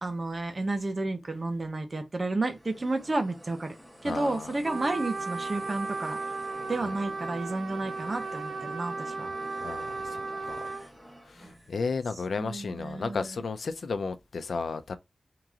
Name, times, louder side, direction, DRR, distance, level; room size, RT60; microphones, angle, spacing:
voice 1, 0.0-3.7 4.0-6.2 6.7-9.3 12.4-13.4, right 2 dB, 35° right, 0.9 m, -31 dB
sound 1, 2.2-12.0, equal, 5° right, 1.3 m, -48 dB
voice 2, 4.0-4.6 6.8-6.9 9.6-10.7 11.2-15.0, left 4 dB, 75° left, 0.6 m, -34 dB
Trumpet, 4.6-10.9, right 3 dB, 60° right, 0.6 m, -35 dB
3.9 x 3.0 x 3.6 m
wide cardioid pair, 130°, 0 cm